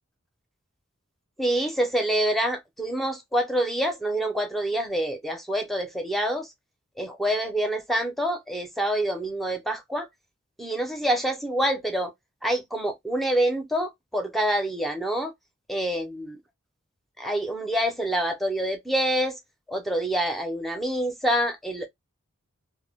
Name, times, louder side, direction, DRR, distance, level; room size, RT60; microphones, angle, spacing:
voice 1, 1.4-6.5 7.0-10.1 10.6-12.1 12.4-15.3 15.7-16.4 17.2-19.4 19.7-21.9, right 1 dB, ahead, 0.6 m, -26 dB
2.1 x 2.1 x 3.4 m
head